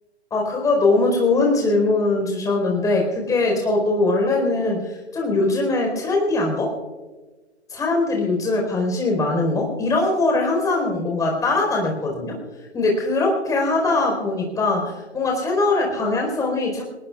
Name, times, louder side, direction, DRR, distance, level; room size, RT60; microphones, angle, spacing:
voice 1, 0.3-6.7 7.7-12.4 12.7-16.8, left 2 dB, 10° left, 0 dB, 4.6 m, -21 dB
28.5 x 18.0 x 2.5 m, 1.3 s
figure-of-eight pair, 125°, 35 cm